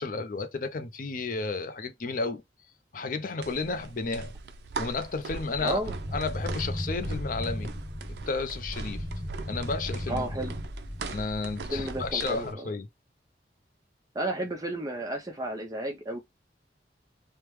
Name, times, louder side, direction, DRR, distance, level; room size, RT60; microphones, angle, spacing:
voice 1, 0.0-2.4 2.9-4.3 4.8-5.8 6.1-7.7 8.3-9.0 9.5-10.2 11.1-12.9, left 3 dB, 50° left, 0.5 m, -32 dB
sound 1, 3.4-12.5, right 4 dB, 70° right, 0.4 m, -41 dB
sound 2, 5.5-12.1, equal, 25° left, 0.9 m, -36 dB
voice 2, 5.6-5.9 10.1-10.5 11.7-12.7 14.1-16.2, right 1 dB, 20° right, 0.7 m, -32 dB
3.3 x 2.1 x 3.0 m
head